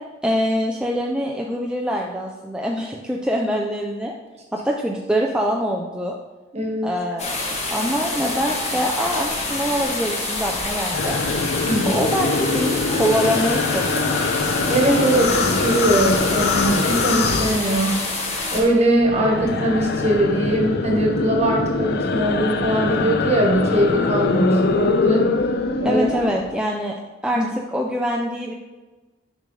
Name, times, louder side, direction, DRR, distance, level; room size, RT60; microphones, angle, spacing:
voice 1, 0.2-4.1 4.5-6.2 6.8-7.4 7.7-11.2 11.9-14.2 25.8-26.9 27.2-27.4 27.7-28.5, equal, 5° right, -2 dB, 0.4 m, -24 dB
voice 2, 6.5-6.9 11.6-11.9 14.7-18.0 18.5-25.3 25.8-26.1 27.3-27.4, right 1 dB, 35° right, -1 dB, 1.4 m, -20 dB
sound 1, 7.2-18.6, left 2 dB, 40° left, 1.2 m, -27 dB
sound 2, 10.9-18.3 18.5-26.5, left 3 dB, 60° left, 0.5 m, -23 dB
6.8 x 5.3 x 3.2 m, 1.2 s
head